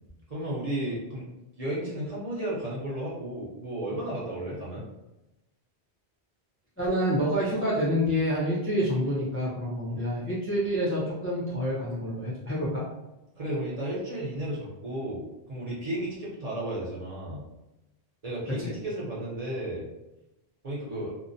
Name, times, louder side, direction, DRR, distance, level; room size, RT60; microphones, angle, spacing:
voice 1, 0.3-1.2 1.6-4.8 13.4-17.5 18.2-19.9 20.6-21.1, right 1 dB, 40° right, -6 dB, 0.7 m, -33 dB
voice 2, 6.8-12.8 18.6-18.7, equal, 20° left, -8 dB, 0.4 m, -27 dB
2.6 x 2.0 x 2.6 m, 0.97 s
omnidirectional pair, 1.1 m